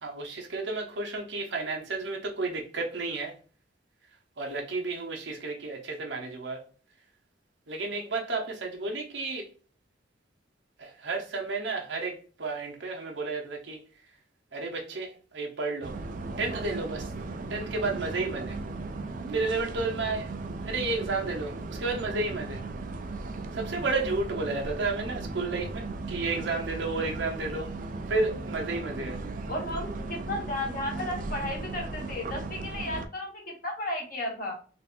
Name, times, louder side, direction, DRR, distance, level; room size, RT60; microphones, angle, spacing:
voice 1, 0.0-3.4 4.4-6.6 7.7-9.5 10.8-13.8 14.5-15.9 16.4-17.1 17.5-18.6 19.3-20.3 20.6-22.6 23.5-27.7 28.1-29.2, right 3 dB, 70° right, 0.8 m, -32 dB
sound 1, 15.8-33.1, right 3 dB, 45° right, 0.4 m, -37 dB
voice 2, 29.5-34.6, left 1 dB, 45° left, 1.5 m, -34 dB
4.0 x 2.6 x 2.5 m
head